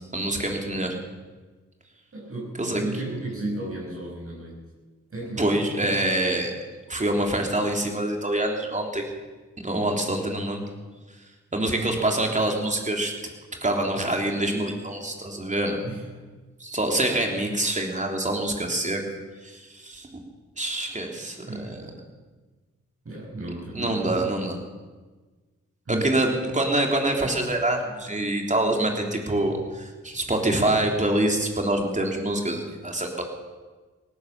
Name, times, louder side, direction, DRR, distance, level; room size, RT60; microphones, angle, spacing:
voice 1, 0.1-1.0 2.6-2.8 5.4-6.5 6.9-9.0 9.6-10.6 11.5-13.1 13.6-15.8 16.6-19.0 19.4-20.2 20.6-21.8 23.7-24.6 26.0-33.2, right 1 dB, 25° right, 2 dB, 3.5 m, -25 dB
voice 2, 2.1-4.6 5.1-5.5 5.8-5.9 15.8-16.3 21.4-22.0 23.0-24.5 25.9-26.2, right 2 dB, 45° right, -4 dB, 5.8 m, -34 dB
18.0 x 11.0 x 7.2 m, 1.3 s
cardioid pair, 65°, 30 cm